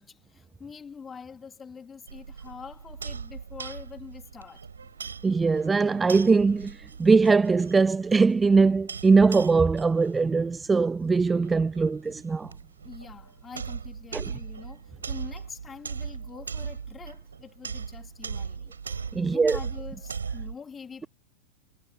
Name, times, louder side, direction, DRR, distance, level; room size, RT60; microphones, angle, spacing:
voice 1, 0.0-4.7 12.8-18.7 19.2-21.1, left 6 dB, 20° left, 3.5 m, -45 dB
sound 1, 2.1-20.5, right 6 dB, 75° right, 5.7 m, -39 dB
voice 2, 5.2-12.5 14.1-14.2 19.1-19.6, right 4 dB, 15° right, 0.4 m, -21 dB
figure-of-eight pair, 90°, 0 cm